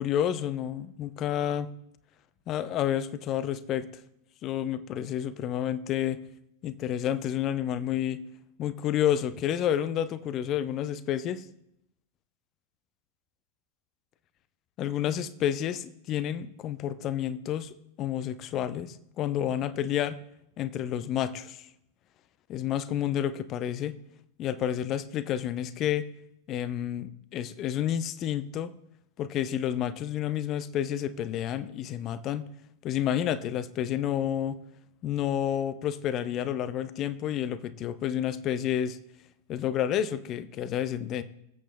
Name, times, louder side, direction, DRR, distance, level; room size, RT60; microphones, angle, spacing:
voice 1, 0.0-1.7 2.5-3.9 4.4-6.2 6.6-8.2 8.6-11.5 14.8-20.2 20.6-21.6 22.5-23.9 24.4-26.1 26.5-28.7 29.2-32.4 32.8-34.6 35.0-39.0 39.5-41.2, left 10 dB, 35° left, 15 dB, 0.6 m, -30 dB
22.0 x 8.2 x 2.2 m, 0.78 s
figure-of-eight pair, 90°, 0 cm